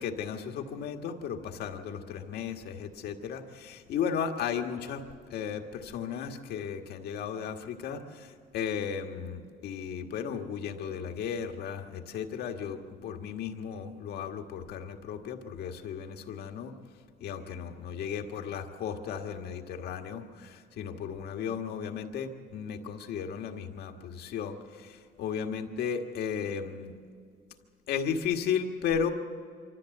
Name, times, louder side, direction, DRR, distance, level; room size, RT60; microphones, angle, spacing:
voice 1, 0.0-5.0 5.3-16.7 17.2-26.9 27.9-29.1, left 7 dB, 75° left, 4 dB, 1.7 m, -35 dB
25.0 x 14.0 x 7.9 m, 2.2 s
cardioid pair, 110°, 17 cm